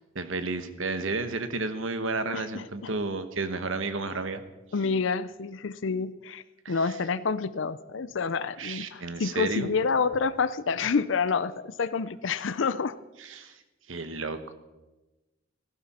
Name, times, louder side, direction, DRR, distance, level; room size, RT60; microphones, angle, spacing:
voice 1, 0.1-4.4 6.6-7.0 8.6-9.7 13.2-13.6 13.9-14.5, right 3 dB, 80° right, 10 dB, 1.2 m, -32 dB
voice 2, 2.3-2.9 4.7-13.0, left 5 dB, 70° left, 14 dB, 0.5 m, -28 dB
17.0 x 15.5 x 4.3 m, 1.1 s
head